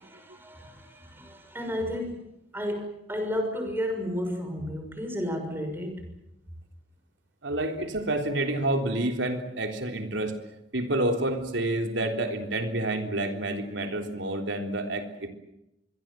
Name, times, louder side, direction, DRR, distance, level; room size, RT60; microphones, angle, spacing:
voice 1, 0.0-2.2 2.5-5.9, equal, 10° right, 4 dB, 6.2 m, -32 dB
voice 2, 7.4-10.4 10.7-15.3, right 1 dB, 90° right, 5 dB, 3.6 m, -29 dB
26.0 x 22.5 x 7.7 m, 0.86 s
head